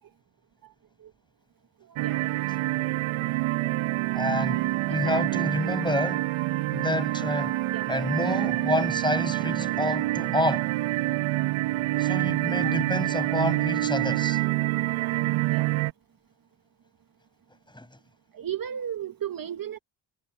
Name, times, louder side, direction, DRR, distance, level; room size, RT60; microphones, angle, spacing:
voice 1, 1.9-2.3 4.8-6.1 6.4-6.5 7.7-7.9 12.6-12.8 15.5-15.7 18.3-19.8, right 9 dB, 45° right, 1.7 m, -36 dB
sound 1, 2.0-15.9, right 17 dB, 80° right, 1.5 m, -27 dB
voice 2, 4.1-6.2 6.7-7.6 7.9-10.7 12.0-14.4 17.7-17.9, left 1 dB, 10° left, 7.0 m, -29 dB
supercardioid pair, 60°, 48 cm